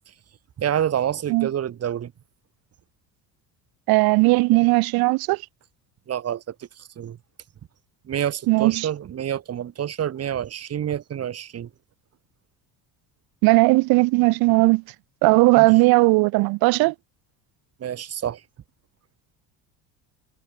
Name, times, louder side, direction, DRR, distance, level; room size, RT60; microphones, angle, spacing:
voice 1, 0.6-2.1 6.1-7.2 8.1-11.7 15.5-15.7 17.8-18.4, right 10 dB, 35° right, 1.3 m, -28 dB
voice 2, 3.9-5.4 8.5-8.9 13.4-14.8 15.2-16.9, right 24 dB, 65° right, 0.6 m, -17 dB
supercardioid pair, 95°, 40 cm